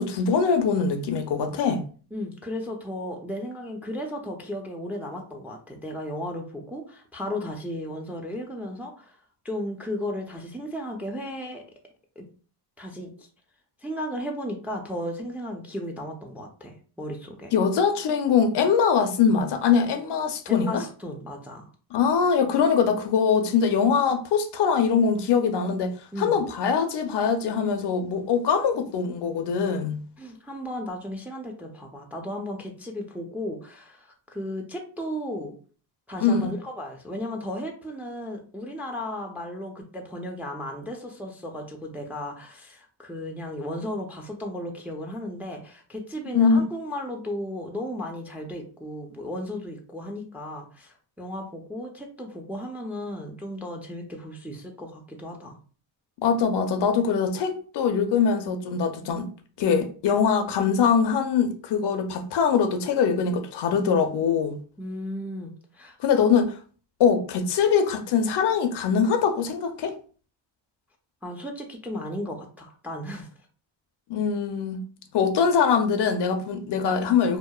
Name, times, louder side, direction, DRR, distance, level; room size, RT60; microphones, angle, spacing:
voice 1, 0.0-1.8 17.5-20.8 21.9-30.0 36.2-36.5 46.3-46.6 56.2-59.3 59.6-64.6 66.0-66.5 67.0-70.0 74.1-74.8 75.1-77.4, left 6 dB, 60° left, 0.5 m, -22 dB
voice 2, 2.1-9.2 9.4-11.6 12.2-12.3 12.8-13.3 13.8-17.5 20.5-21.7 26.1-26.4 30.2-35.5 36.1-55.6 64.8-66.0 71.2-73.3, left 1 dB, 5° right, 0.4 m, -35 dB
2.8 x 2.0 x 2.2 m
cardioid pair, 80°, 48 cm